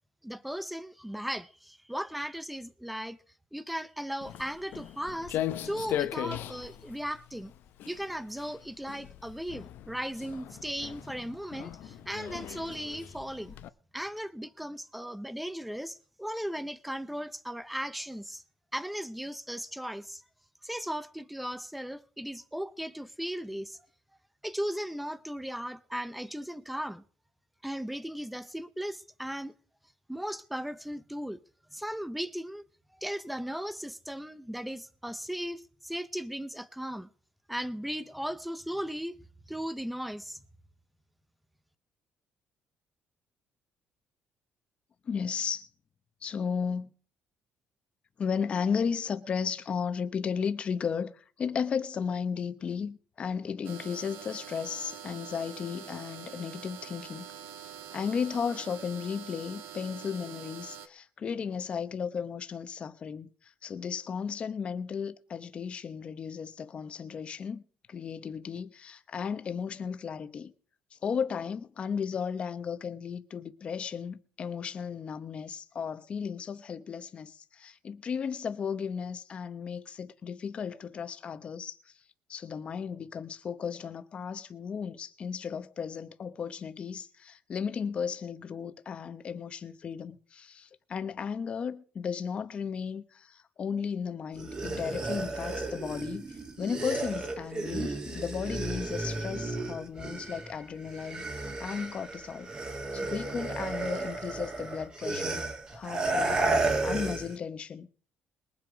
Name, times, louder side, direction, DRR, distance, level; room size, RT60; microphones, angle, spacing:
voice 1, 0.2-3.2 3.5-5.4 5.6-7.5 7.9-13.6 13.9-18.4 18.7-20.2 20.6-23.8 24.4-27.0 27.6-29.5 30.1-31.4 31.7-32.6 32.9-37.1 37.5-39.2 39.5-40.4, equal, ahead, 0.6 m, -37 dB
Walk footsteps, 4.2-13.7, left 12 dB, 65° left, 0.7 m, -39 dB
voice 2, 45.0-45.7 46.2-46.9 48.2-57.2 57.9-67.6 67.9-70.5 70.9-81.8 82.3-102.5 102.9-105.4 105.7-107.9, left 6 dB, 30° left, 0.9 m, -35 dB
sound 1, 53.6-60.9, right 8 dB, 85° right, 1.3 m, -45 dB
sound 2, 94.3-100.6 100.8-107.4, right 2 dB, 25° right, 1.9 m, -33 dB
21.5 x 7.8 x 5.1 m
cardioid pair, 175°, 4 cm